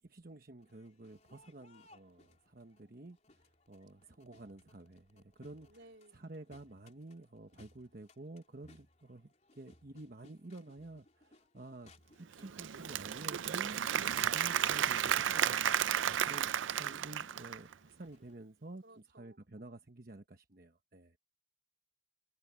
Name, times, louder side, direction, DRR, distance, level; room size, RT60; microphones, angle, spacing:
voice 1, 0.0-5.7 6.1-11.9 12.2-21.2, right 2 dB, 50° right, 1.0 m, -51 dB
Crowd, 0.6-18.3, left 2 dB, 35° left, 3.9 m, -66 dB
voice 2, 5.6-6.2 12.4-12.8 18.8-19.4, right 1 dB, 70° right, 3.5 m, -59 dB
Applause / Crowd, 12.3-17.7, right 9 dB, 90° right, 0.5 m, -33 dB
head